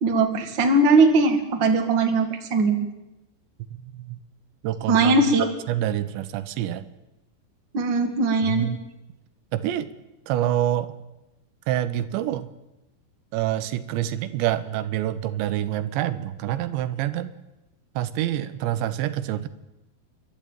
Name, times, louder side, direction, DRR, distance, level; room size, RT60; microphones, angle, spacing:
voice 1, 0.0-2.8 4.9-5.5 7.7-8.7, right 3 dB, 35° right, 4 dB, 2.2 m, -20 dB
voice 2, 4.6-5.2 5.7-6.8 8.4-8.8 9.5-9.9 10.3-11.0 11.7-12.5 13.3-17.3 18.0-19.5, right 12 dB, 85° right, 12 dB, 3.3 m, -26 dB
30.0 x 12.5 x 9.1 m, 0.97 s
omnidirectional pair, 5.0 m